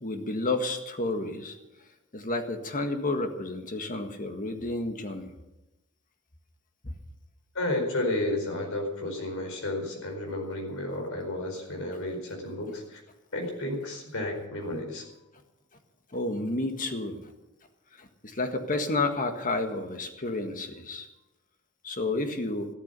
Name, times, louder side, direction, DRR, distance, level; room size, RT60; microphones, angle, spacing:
voice 1, 0.0-1.5 2.1-5.3 6.8-6.9 16.1-17.2 18.0-21.1 21.8-22.7, left 2 dB, 40° left, 6 dB, 1.7 m, -31 dB
voice 2, 7.5-13.0 13.3-15.0, left 1 dB, 65° left, 3 dB, 4.7 m, -32 dB
14.0 x 13.0 x 6.9 m, 0.96 s
head